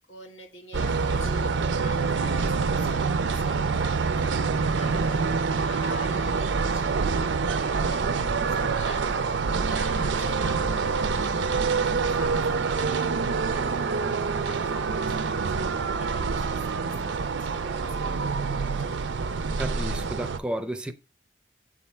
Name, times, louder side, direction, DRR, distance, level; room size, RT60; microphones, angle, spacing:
voice 1, 0.1-15.7 16.0-19.0, left 1 dB, 90° left, 1.8 m, -46 dB
sound 1, 0.7-20.4, right 4 dB, 85° right, 0.5 m, -26 dB
voice 2, 19.6-20.9, right 1 dB, 5° right, 0.5 m, -32 dB
7.9 x 3.6 x 4.2 m
head